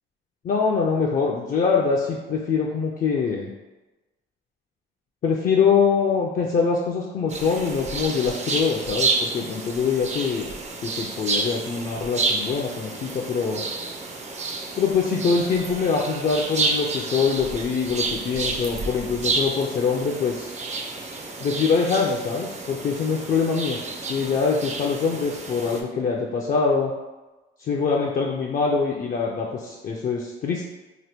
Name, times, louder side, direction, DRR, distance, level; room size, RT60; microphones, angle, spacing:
voice 1, 0.4-3.5 5.2-10.5 10.8-13.6 14.8-20.5 21.4-23.8 24.0-26.9 27.6-30.7, left 5 dB, 45° left, -2 dB, 0.4 m, -24 dB
sound 1, 7.3-25.8, right 3 dB, 35° right, 0.4 m, -30 dB
2.9 x 2.1 x 3.4 m, 1.1 s
cardioid pair, 90°, 20 cm